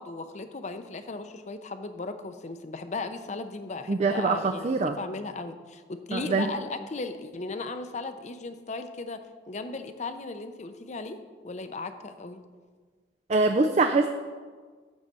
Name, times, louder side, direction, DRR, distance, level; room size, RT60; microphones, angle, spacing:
voice 1, 0.0-11.2 11.4-12.4, left 3 dB, 40° left, 9 dB, 0.6 m, -36 dB
voice 2, 3.9-5.0 6.1-6.5 13.3-14.1, right 3 dB, 40° right, 6 dB, 0.4 m, -24 dB
11.5 x 4.0 x 7.5 m, 1.5 s
head